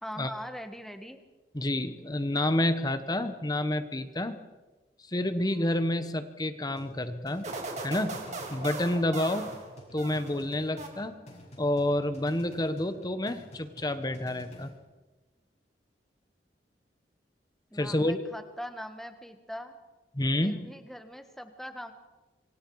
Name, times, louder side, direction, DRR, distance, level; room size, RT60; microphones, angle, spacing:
voice 1, 0.0-1.2 17.7-19.8 20.4-21.9, equal, ahead, 7 dB, 1.5 m, -41 dB
voice 2, 1.5-4.4 5.1-7.5 7.8-8.2 8.5-9.5 9.9-11.2 11.6-14.7 17.7-18.2 20.1-20.7, left 1 dB, 20° left, 10 dB, 1.1 m, -29 dB
sound 1, 6.8-14.8, equal, 40° left, 6.7 m, -51 dB
sound 2, 7.4-10.4 10.8-11.4, right 3 dB, 40° right, 3.6 m, -39 dB
26.5 x 25.0 x 4.8 m, 1.2 s
head